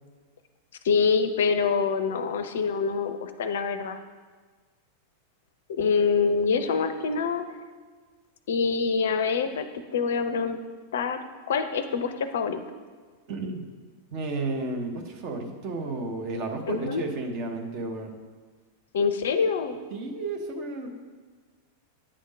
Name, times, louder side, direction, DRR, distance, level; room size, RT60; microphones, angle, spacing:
voice 1, 0.8-4.0 5.7-7.4 8.5-9.7 9.9-10.6 10.9-11.2 11.5-12.6 16.7-17.0 18.9-19.8, left 5 dB, 60° left, 10 dB, 0.4 m, -25 dB
voice 2, 13.3-13.7 14.1-18.2 19.9-20.9, right 3 dB, 40° right, 3 dB, 0.9 m, -32 dB
8.5 x 3.6 x 5.2 m, 1.5 s
figure-of-eight pair, 90°, 0 cm